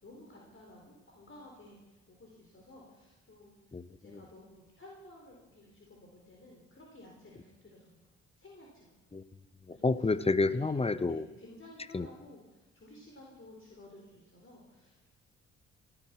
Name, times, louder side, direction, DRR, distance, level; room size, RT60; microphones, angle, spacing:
voice 1, 0.0-1.8 2.1-3.6 4.0-8.1 8.4-8.9 9.7-9.9 10.4-10.7 11.1-15.1, left 1 dB, 35° left, -2 dB, 4.5 m, -54 dB
voice 2, 9.7-11.3 11.9-12.1, left 3 dB, 15° left, 16 dB, 0.8 m, -29 dB
18.0 x 11.5 x 6.1 m, 1.1 s
hypercardioid pair, 40°, 34 cm